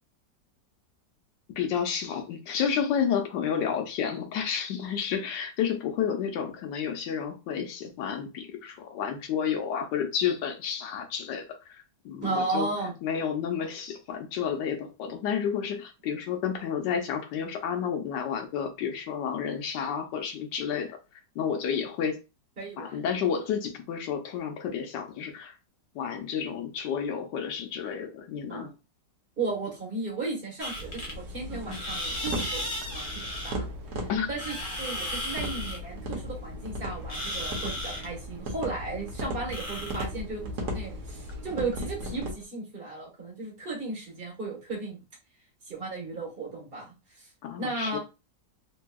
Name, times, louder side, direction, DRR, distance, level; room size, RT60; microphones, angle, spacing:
voice 1, 1.6-11.7 12.0-12.7 13.0-21.0 21.3-22.2 22.8-25.5 25.9-28.7 34.1-34.3 47.4-48.0, left 7 dB, 80° left, 1.3 m, -30 dB
voice 2, 12.2-12.9 22.6-23.0 28.5-28.7 29.4-33.7 34.3-45.0 45.7-47.3 47.6-48.0, right 3 dB, 35° right, 1.3 m, -35 dB
sound 1, 30.6-42.4, equal, 45° left, 0.4 m, -37 dB
sound 2, 30.8-42.3, equal, 65° right, 1.2 m, -37 dB
3.4 x 2.7 x 2.2 m
omnidirectional pair, 1.9 m